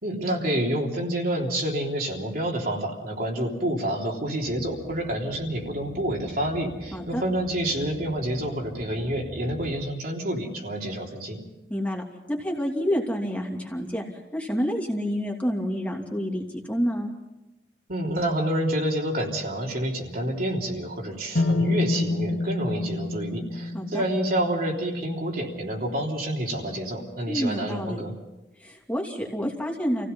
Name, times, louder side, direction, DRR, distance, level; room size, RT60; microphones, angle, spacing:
voice 1, 0.0-11.4 17.9-28.1, right 1 dB, 55° right, -1 dB, 3.5 m, -28 dB
sound 1, 4.4-9.7, equal, 75° right, 3.0 m, -42 dB
voice 2, 6.9-7.2 11.7-12.0 12.3-17.1 23.7-24.0 27.3-28.0 28.6-30.1, equal, 10° left, 0 dB, 2.7 m, -28 dB
sound 2, 21.4-25.3, left 2 dB, 70° left, 2.1 m, -28 dB
28.0 x 16.5 x 5.6 m, 1.0 s
head